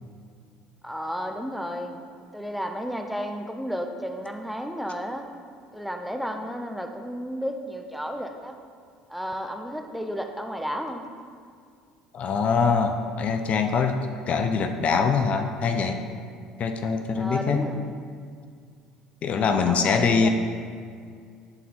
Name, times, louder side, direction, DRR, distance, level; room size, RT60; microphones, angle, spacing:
voice 1, 0.8-2.0 2.3-5.3 5.7-8.6 9.1-11.0 17.2-17.9 19.6-20.3, equal, ahead, 5 dB, 0.7 m, -32 dB
voice 2, 12.1-14.0 14.3-16.0 16.6-17.7 19.2-20.3, left 5 dB, 45° left, 6 dB, 0.5 m, -23 dB
10.5 x 4.1 x 4.3 m, 2.2 s
hypercardioid pair, 65°, 3 cm